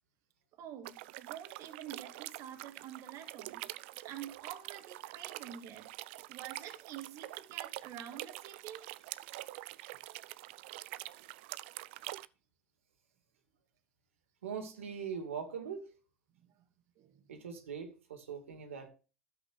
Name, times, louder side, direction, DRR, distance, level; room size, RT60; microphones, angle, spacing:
voice 1, 0.6-3.8 4.0-5.9 6.3-8.9 16.5-16.6 17.0-17.2, right 10 dB, 50° right, 1.7 m, -48 dB
sound 1, 0.9-12.3, right 18 dB, 65° right, 0.6 m, -46 dB
voice 2, 14.4-16.0 17.3-18.9, right 6 dB, 85° right, 2.5 m, -41 dB
12.5 x 8.0 x 3.4 m
hypercardioid pair, 90°, 7 cm